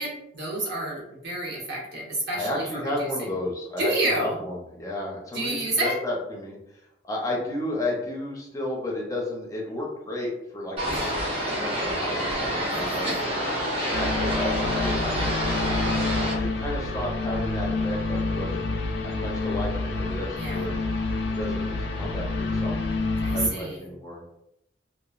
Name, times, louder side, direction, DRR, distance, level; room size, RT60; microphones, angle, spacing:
voice 1, 0.0-3.3 3.8-4.4 5.3-6.0 10.9-11.1 12.7-13.2 20.4-20.7 23.2-23.9, right 1 dB, 65° right, -3 dB, 1.0 m, -29 dB
voice 2, 2.3-6.6 7.0-13.3 13.8-15.7 16.3-18.7 19.0-20.8 21.3-22.9 23.3-24.2, left 1 dB, 20° left, -2 dB, 0.6 m, -33 dB
sound 1, 10.8-16.3, equal, 30° right, 0.8 m, -27 dB
sound 2, 13.9-23.5, left 3 dB, 65° left, 0.4 m, -28 dB
2.9 x 2.2 x 2.3 m, 0.82 s
head